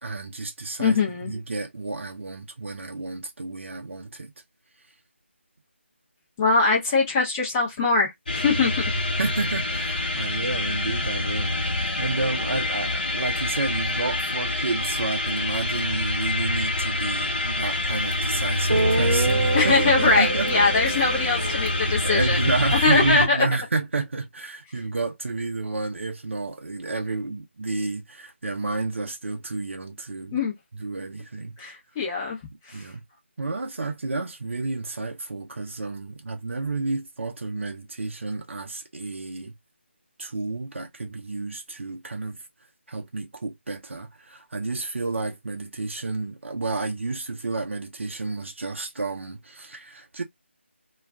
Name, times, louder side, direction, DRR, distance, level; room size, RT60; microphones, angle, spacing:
voice 1, 0.0-4.3 8.5-8.6 9.2-20.9 21.9-30.4 30.7-31.7 32.7-33.0 33.4-39.6 40.2-42.4 42.9-50.2, right 3 dB, 75° right, 0.6 m, -30 dB
voice 2, 0.8-1.3 6.4-8.8 19.5-22.4 22.7-23.5 30.3-30.5 31.6-32.4 32.7-32.8, left 4 dB, 15° left, 0.6 m, -22 dB
sound 1, 8.3-23.3, left 2 dB, 45° left, 0.8 m, -26 dB
Guitar, 18.1-18.2 18.7-22.8, right 3 dB, 55° right, 0.9 m, -28 dB
2.4 x 2.1 x 3.5 m
figure-of-eight pair, 170°, 7 cm